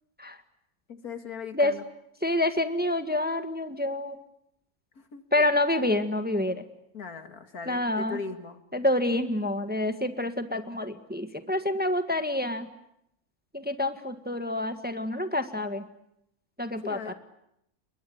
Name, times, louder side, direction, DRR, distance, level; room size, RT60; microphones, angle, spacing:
voice 1, 0.9-1.8 5.0-5.5 6.9-8.6 16.8-17.1, left 5 dB, 75° left, 7 dB, 2.6 m, -39 dB
voice 2, 2.2-4.2 5.3-6.6 7.6-8.2 8.7-12.7 13.5-15.8 16.6-17.1, left 1 dB, 5° right, 8 dB, 1.5 m, -27 dB
29.0 x 22.5 x 8.7 m, 0.79 s
omnidirectional pair, 1.6 m